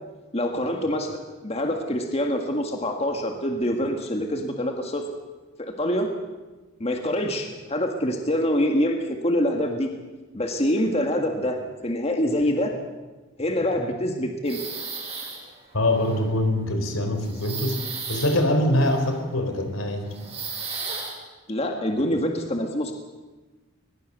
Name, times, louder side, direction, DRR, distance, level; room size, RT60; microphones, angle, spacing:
voice 1, 0.3-5.0 5.6-6.1 6.8-9.9 10.3-12.8 13.4-14.6 21.5-22.9, equal, 30° left, 3 dB, 1.8 m, -25 dB
sound 1, 14.5-15.5 15.8-16.2 17.2-19.2 20.1-21.1, right 5 dB, 30° right, 6.6 m, -35 dB
voice 2, 15.7-17.8 18.1-20.2, left 1 dB, 80° left, 6 dB, 4.0 m, -23 dB
21.5 x 21.5 x 6.8 m, 1.2 s
head